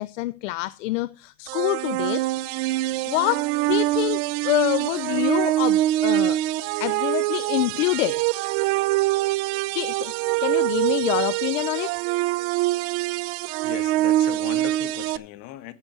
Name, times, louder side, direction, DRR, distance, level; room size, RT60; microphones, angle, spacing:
voice 1, 0.0-2.3 3.1-6.4 6.8-8.2 9.7-10.1 10.4-12.0, left 18 dB, 70° left, 0.6 m, -26 dB
sound 1, 1.5-15.2, right 16 dB, 40° right, 0.6 m, -24 dB
voice 2, 13.6-15.7, left 14 dB, 45° left, 1.7 m, -38 dB
15.0 x 7.2 x 4.5 m
supercardioid pair, 155°, 39 cm